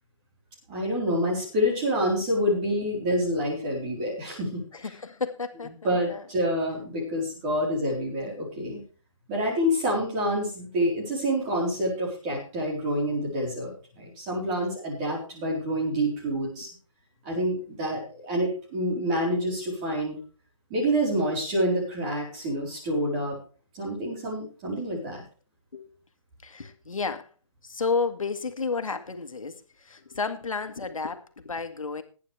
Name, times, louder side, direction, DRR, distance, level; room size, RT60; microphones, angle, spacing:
voice 1, 0.7-4.6 5.8-8.8 9.3-16.7 17.2-20.2 20.7-23.4 23.7-25.2, equal, 15° right, -3 dB, 4.2 m, -27 dB
voice 2, 4.7-6.2 16.6-16.7 25.7-25.9 26.4-27.3 27.6-32.0, left 4 dB, 80° left, 8 dB, 1.9 m, -32 dB
19.5 x 9.5 x 3.4 m, 0.38 s
hypercardioid pair, 175°, 17 cm